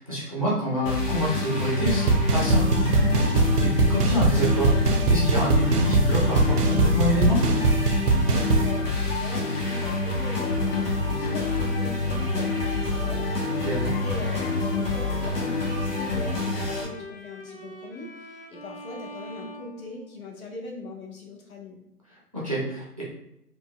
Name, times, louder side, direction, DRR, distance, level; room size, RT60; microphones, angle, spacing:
voice 1, 0.0-3.1 3.4-7.5 13.6-13.9 22.1-23.0, equal, 25° right, -5 dB, 0.4 m, -27 dB
sound 1, 0.9-16.9, left 3 dB, 85° left, 1.3 m, -27 dB
sound 2, 1.9-8.7, right 3 dB, 75° right, 0.7 m, -22 dB
voice 2, 8.2-21.8, left 2 dB, 60° left, -2 dB, 1.2 m, -41 dB
Bowed string instrument, 10.7-20.5, left 1 dB, 40° left, 0.5 m, -44 dB
4.4 x 2.1 x 2.2 m, 0.83 s
hypercardioid pair, 145°, 47 cm